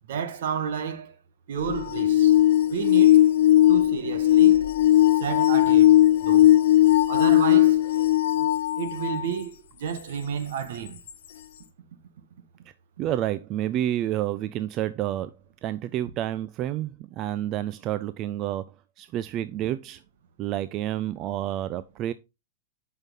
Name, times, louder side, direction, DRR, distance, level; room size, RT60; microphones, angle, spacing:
voice 1, 0.1-1.1 1.5-2.4 2.7-3.2 3.7-4.7 5.1-6.5 7.1-7.9 8.3-8.5 8.8-11.0, right 8 dB, 75° right, 1.4 m, -32 dB
sound 1, 1.6-9.3 10.0-10.1 11.1-11.2, left 13 dB, 70° left, 1.1 m, -18 dB
voice 2, 13.0-15.3 15.6-18.6 19.0-20.0 20.4-22.1, right 12 dB, 40° right, 0.4 m, -29 dB
8.0 x 5.6 x 3.7 m
hypercardioid pair, 115°, 0 cm